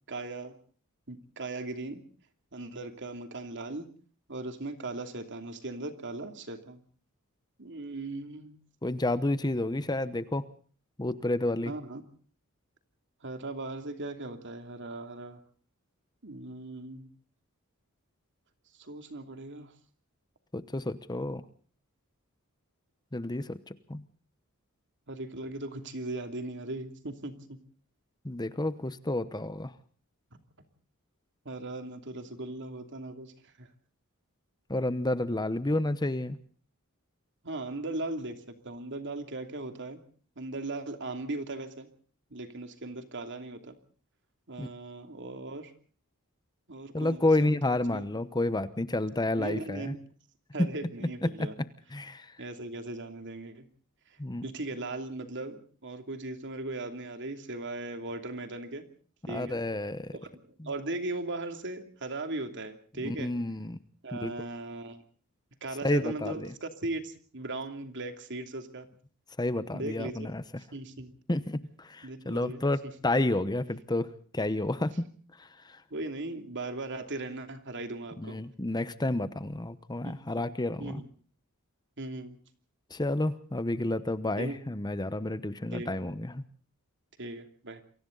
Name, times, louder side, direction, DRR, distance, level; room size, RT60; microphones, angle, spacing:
voice 1, 0.1-0.5 1.1-2.0 2.5-3.9 4.3-6.8 7.6-8.6 11.7-12.0 13.2-15.4 16.2-17.1 18.8-19.7 25.1-27.3 31.4-33.3 33.6-33.7 37.4-38.4 38.6-40.0 40.4-41.9 42.3-43.8 44.5-45.7 46.7-48.0 49.4-50.0 50.5-51.5 52.4-53.6 54.4-58.9 59.3-59.6 60.2-63.3 64.0-65.0 65.6-68.9 69.7-70.3 70.7-71.1 72.0-72.6 75.9-78.4 80.0-80.1 80.8-81.1 82.0-82.4 84.4-84.6 85.7-85.9 87.2-87.8, right 2 dB, 55° right, 7 dB, 2.8 m, -38 dB
voice 2, 8.8-10.5 11.0-11.7 20.5-21.4 23.1-24.0 28.2-29.7 34.7-36.4 44.6-44.7 46.9-49.9 50.6-50.7 51.2-51.5 51.9-52.3 54.2-54.4 59.3-60.1 63.0-63.8 64.2-64.3 65.8-66.5 69.4-70.4 71.3-75.1 75.4-75.8 78.2-81.0 82.9-86.4, left 2 dB, 20° left, 13 dB, 0.9 m, -30 dB
28.5 x 23.5 x 3.9 m, 0.43 s
head